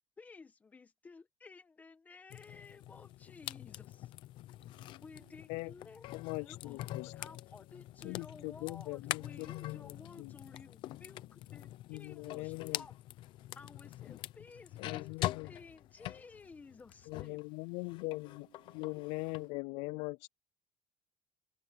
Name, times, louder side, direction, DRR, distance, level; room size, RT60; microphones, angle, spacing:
voice 1, 0.2-4.1 5.0-6.0 6.4-13.0 13.5-17.5, left 4 dB, 15° left, 1.5 m, -55 dB
sound 1, 2.3-17.4 17.8-19.5, left 15 dB, 50° left, 0.7 m, -44 dB
voice 2, 4.6-5.9 10.3-11.0 18.0-19.6, right 20 dB, 85° right, 4.2 m, -70 dB
voice 3, 6.1-7.1 8.0-10.3 11.9-12.8 14.8-15.5 17.1-18.5 18.7-20.3, left 26 dB, 85° left, 0.4 m, -41 dB
cardioid pair, 180°, 10 cm